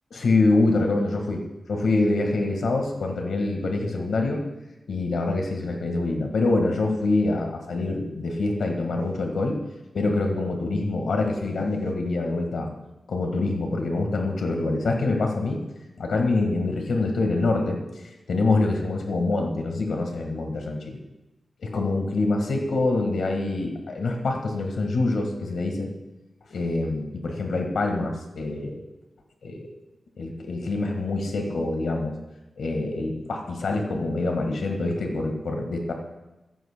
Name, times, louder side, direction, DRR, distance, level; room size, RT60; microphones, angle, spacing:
voice 1, 0.1-1.4 1.7-4.4 4.9-9.6 9.9-12.7 13.1-15.6 16.0-17.8 18.3-21.0 21.6-25.9 26.5-28.8 29.4-29.7 30.2-32.1 32.6-35.9, left 2 dB, 90° left, 3 dB, 1.6 m, -25 dB
15.0 x 14.0 x 2.2 m, 1.0 s
wide cardioid pair, 150°, 0 cm